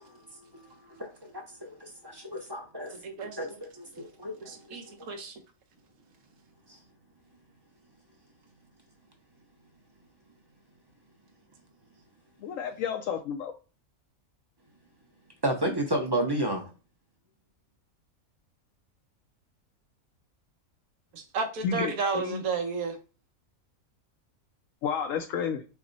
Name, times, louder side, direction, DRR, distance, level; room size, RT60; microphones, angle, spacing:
voice 1, 0.0-2.9 3.3-5.1 15.4-16.7, right 1 dB, 25° right, 0.5 m, -33 dB
voice 2, 2.9-3.4 4.4-5.4 21.1-23.0, right 4 dB, 80° right, 1.3 m, -32 dB
voice 3, 12.4-13.5 21.6-22.4 24.8-25.6, left 7 dB, 75° left, 0.9 m, -31 dB
5.8 x 2.1 x 4.0 m
omnidirectional pair, 1.5 m